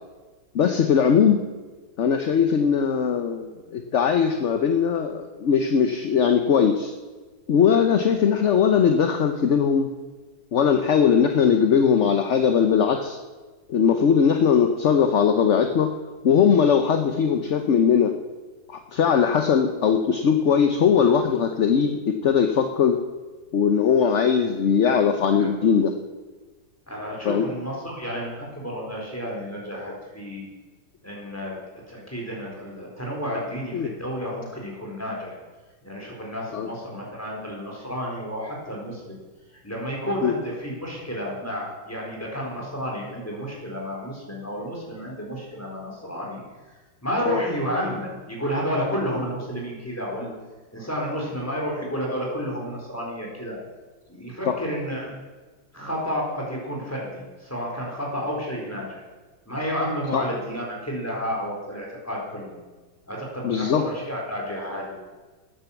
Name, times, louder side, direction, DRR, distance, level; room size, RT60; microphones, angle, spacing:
voice 1, 0.5-1.4 2.0-6.9 7.5-9.9 10.5-13.2 13.7-15.9 16.2-18.1 18.7-23.0 23.5-25.9 27.2-27.4 33.7-33.9 36.5-36.7 40.2-40.3 47.3-47.4 54.5-54.6 60.1-60.2 63.4-63.8, left 7 dB, 55° left, 6 dB, 1.0 m, -20 dB
voice 2, 26.9-30.4 31.0-31.6 31.9-35.4 35.8-39.2 39.5-50.3 50.7-53.6 54.1-55.1 55.7-59.0 59.5-62.5 63.1-64.9, equal, 10° left, -3 dB, 4.2 m, -31 dB
14.0 x 9.8 x 7.1 m, 1.3 s
omnidirectional pair, 1.9 m